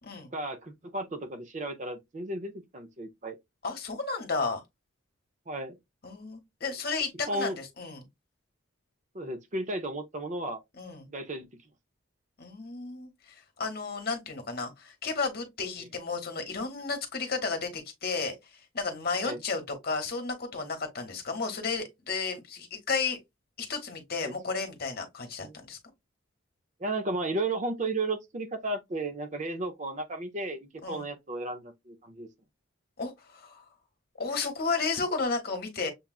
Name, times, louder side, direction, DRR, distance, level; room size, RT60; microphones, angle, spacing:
voice 1, 0.3-3.4 5.5-5.8 7.3-7.6 9.1-10.6 11.1-11.5 19.2-19.4 24.2-24.4 25.4-25.6 26.8-32.3, right 2 dB, 35° right, 0.5 m, -34 dB
voice 2, 3.6-4.6 6.0-8.0 10.8-11.1 12.4-23.2 23.6-25.8 30.8-31.1 33.0-33.6 34.2-35.9, left 4 dB, 45° left, 1.1 m, -33 dB
6.7 x 2.4 x 2.3 m
head